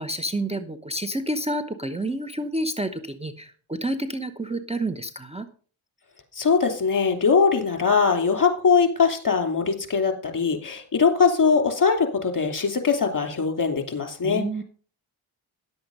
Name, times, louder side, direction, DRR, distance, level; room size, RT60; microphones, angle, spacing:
voice 1, 0.0-5.5 14.2-14.6, right 1 dB, 15° right, 10 dB, 0.9 m, -29 dB
voice 2, 6.3-14.6, left 5 dB, 40° left, 5 dB, 2.9 m, -21 dB
11.0 x 7.8 x 5.3 m, 0.42 s
cardioid pair, 55°, 48 cm